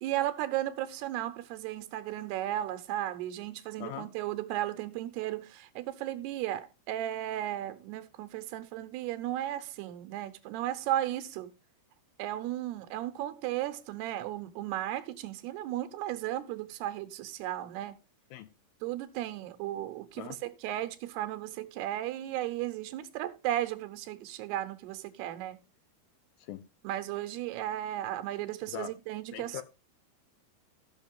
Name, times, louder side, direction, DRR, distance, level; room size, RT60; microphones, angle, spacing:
voice 1, 0.0-11.5 12.2-18.0 18.8-25.6 26.8-29.6, right 13 dB, 85° right, 2.9 m, -35 dB
voice 2, 29.3-29.6, left 13 dB, 80° left, 2.2 m, -40 dB
16.0 x 6.1 x 3.6 m
omnidirectional pair, 4.6 m